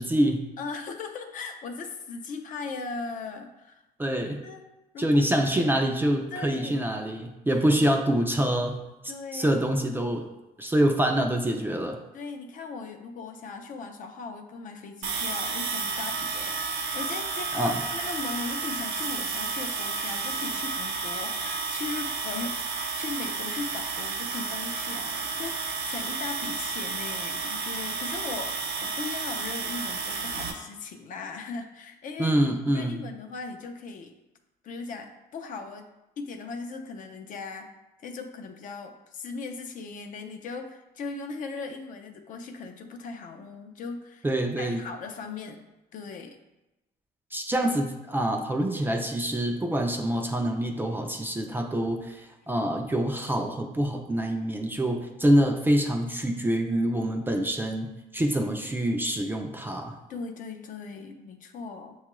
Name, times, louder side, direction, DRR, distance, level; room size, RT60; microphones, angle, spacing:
voice 1, 0.0-0.4 4.0-4.4 5.0-8.8 9.3-10.3 10.6-12.0 17.5-17.8 32.2-33.0 44.2-44.8 47.3-60.0, right 1 dB, 10° right, 3 dB, 0.4 m, -26 dB
voice 2, 0.6-3.8 4.4-4.7 4.9-5.5 6.3-6.8 7.5-7.8 9.1-9.6 12.1-32.4 32.7-34.2 34.6-35.9 36.2-37.7 38.0-44.3 44.6-45.6 45.9-46.4 60.1-62.0, left 4 dB, 50° left, 5 dB, 0.5 m, -38 dB
sound 1, 15.0-30.5, right 4 dB, 85° right, 0.7 m, -32 dB
6.4 x 2.3 x 3.0 m, 0.98 s
cardioid pair, 110°, 17 cm